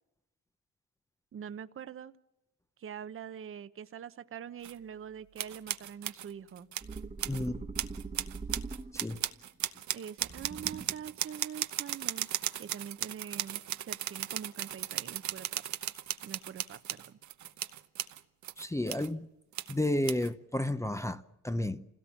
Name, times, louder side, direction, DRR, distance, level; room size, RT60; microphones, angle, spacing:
voice 1, 1.3-2.1 2.8-6.7 9.9-12.3 12.6-15.6 16.2-17.2, right 8 dB, 45° right, 0.9 m, -44 dB
sound 1, 4.6-4.7 5.4-7.5 7.8-19.1 19.5-19.8 20.0-20.3, right 12 dB, 70° right, 0.9 m, -36 dB
sound 2, 6.8-9.3 10.2-11.2, right 4 dB, 25° right, 1.2 m, -42 dB
voice 2, 7.3-7.6 8.9-9.2 18.6-19.3 19.7-21.9, left 1 dB, 10° left, 0.7 m, -32 dB
27.0 x 17.0 x 7.3 m
cardioid pair, 90°, 30 cm